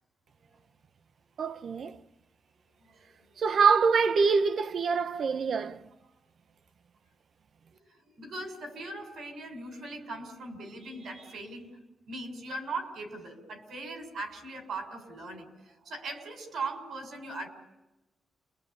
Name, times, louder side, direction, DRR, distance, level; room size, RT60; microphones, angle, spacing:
voice 1, 1.4-2.0 3.4-5.8, right 5 dB, 65° right, 1.0 m, -25 dB
voice 2, 2.8-3.4 5.7-6.1 7.7-11.8 12.1-17.5, right 2 dB, 85° right, 6.7 m, -40 dB
30.0 x 23.0 x 8.6 m
cardioid pair, 105°, 0 cm